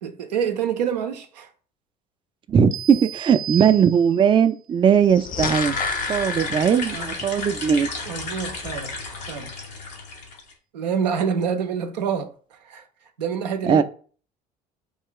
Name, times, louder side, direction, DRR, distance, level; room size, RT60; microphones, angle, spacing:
voice 1, 0.0-1.5 6.9-7.1 8.1-9.0 9.3-9.6 10.7-13.8, right 7 dB, 85° right, 0.5 m, -27 dB
voice 2, 2.5-5.8 6.1-7.9 13.6-13.8, right 7 dB, 25° right, 0.3 m, -19 dB
sound 1, 2.7-4.4, right 10 dB, 40° right, 0.7 m, -35 dB
sound 2, 4.9-7.4 7.7-7.8, left 4 dB, 40° left, 0.6 m, -29 dB
sound 3, 5.5-10.5, left 3 dB, 85° left, 0.9 m, -33 dB
3.2 x 2.3 x 3.7 m
hypercardioid pair, 60°, 21 cm